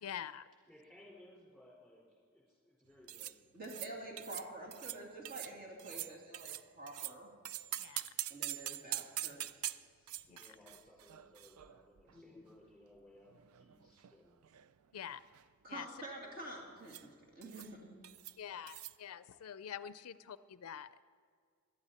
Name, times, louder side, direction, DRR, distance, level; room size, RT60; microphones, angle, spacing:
voice 1, 0.0-0.5 7.8-8.0 10.3-10.4 14.9-15.2 15.7-15.9 18.4-21.0, left 9 dB, 90° left, 15 dB, 0.4 m, -46 dB
voice 2, 0.7-3.4 3.8-3.9 10.3-14.4, left 1 dB, ahead, -4 dB, 4.6 m, -61 dB
sound 1, 3.1-3.3 3.6-3.9 4.2-4.5 4.7-5.0 5.2-5.5 5.8-7.1 7.4-12.1 12.4-12.5 13.3-14.1 14.4-14.7 15.0-15.4 16.9-17.1 17.4-17.7 18.0-18.3 18.7-18.9, right 13 dB, 80° right, 0.4 m, -44 dB
voice 3, 3.5-7.3 8.3-9.9 10.5-10.6 12.1-12.4 15.6-18.0, right 1 dB, 45° right, -2 dB, 2.5 m, -48 dB
17.0 x 12.0 x 4.3 m, 2.1 s
head